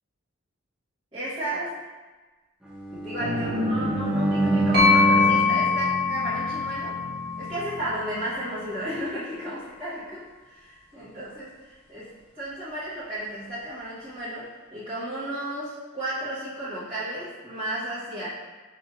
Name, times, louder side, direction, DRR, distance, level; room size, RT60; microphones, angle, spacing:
voice 1, 1.1-1.9 2.9-7.0 7.3-18.3, right 1 dB, 25° right, -16 dB, 1.2 m, -34 dB
Bowed string instrument, 2.7-6.8, right 2 dB, 5° right, 0.4 m, -27 dB
sound 1, 3.2-8.9, right 1 dB, 75° right, 0.9 m, -32 dB
sound 2, 4.7-8.5, left 5 dB, 50° right, 1.4 m, -24 dB
6.1 x 3.1 x 2.4 m, 1.3 s
head